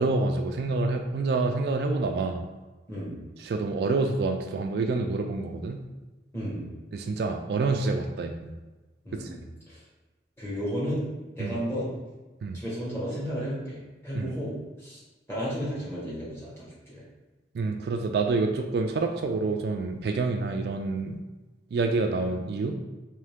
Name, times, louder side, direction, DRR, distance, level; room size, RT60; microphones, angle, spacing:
voice 1, 0.0-2.4 3.4-5.8 6.9-8.5 9.1-9.3 11.4-11.6 12.4-12.6 14.1-14.4 17.5-21.2 21.7-22.8, right 3 dB, 60° right, 5 dB, 0.3 m, -27 dB
voice 2, 6.3-6.7 9.0-9.8 10.4-11.1 11.3-11.9 12.5-15.0 15.3-17.0, equal, 15° left, -7 dB, 1.2 m, -33 dB
3.7 x 3.1 x 3.4 m, 1.2 s
head